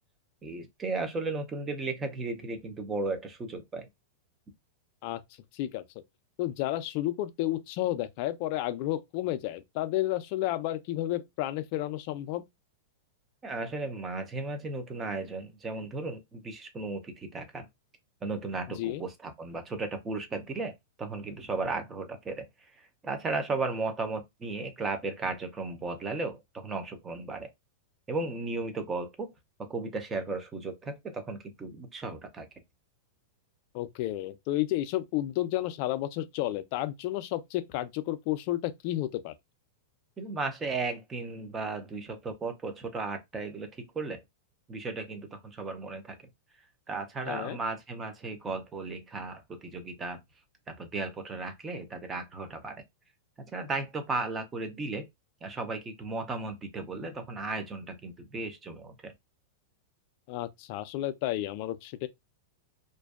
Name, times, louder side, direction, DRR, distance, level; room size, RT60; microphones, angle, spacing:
voice 1, 0.4-3.9 13.4-17.7 18.2-22.5 22.8-27.5 28.1-29.3 29.6-32.5 40.2-44.2 44.7-46.2 46.9-50.2 50.7-52.8 53.5-55.1 55.4-59.1, right 3 dB, 15° right, 0.5 m, -35 dB
voice 2, 5.5-5.8 6.4-12.4 18.8-19.0 33.7-39.3 47.3-47.6 60.3-62.1, left 14 dB, 45° left, 0.3 m, -31 dB
2.5 x 2.2 x 2.3 m
supercardioid pair, 160°, 0 cm